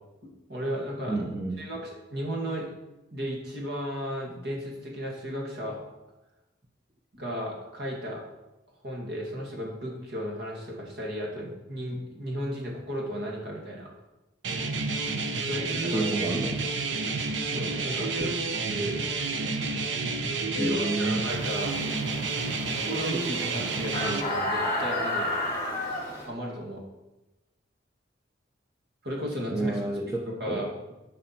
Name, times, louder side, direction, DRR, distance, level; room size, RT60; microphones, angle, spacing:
voice 1, 0.5-1.2 1.6-2.7 3.1-5.8 7.1-8.2 8.8-13.9 15.4-16.1 17.5-19.0 20.5-21.8 22.8-25.3 26.3-26.8 29.0-29.7 30.1-30.9, equal, 60° right, -1 dB, 2.1 m, -34 dB
voice 2, 1.1-1.6 15.9-16.6 20.6-21.3 29.5-30.7, right 2 dB, 15° right, 1 dB, 0.7 m, -30 dB
sound 1, 14.4-24.2, right 4 dB, 75° right, 0.8 m, -30 dB
sound 2, 21.3-26.3, left 1 dB, 20° left, 2.3 m, -32 dB
11.0 x 5.2 x 4.5 m, 1.0 s
head